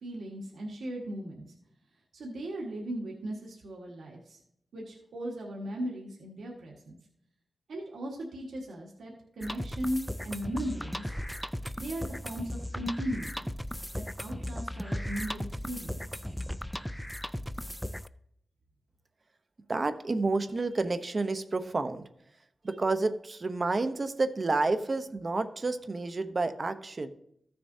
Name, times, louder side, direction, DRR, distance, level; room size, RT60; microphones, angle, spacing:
voice 1, 0.0-1.4 2.1-4.4 4.7-7.0 7.7-11.1 11.8-13.5 13.9-16.0, equal, 90° right, -2 dB, 1.5 m, -37 dB
sound 1, 9.4-18.1, equal, 5° left, 0.3 m, -36 dB
voice 2, 19.7-22.1 22.6-27.1, right 3 dB, 45° right, 10 dB, 0.8 m, -30 dB
15.0 x 6.7 x 2.7 m, 0.74 s
wide cardioid pair, 80°, 0 cm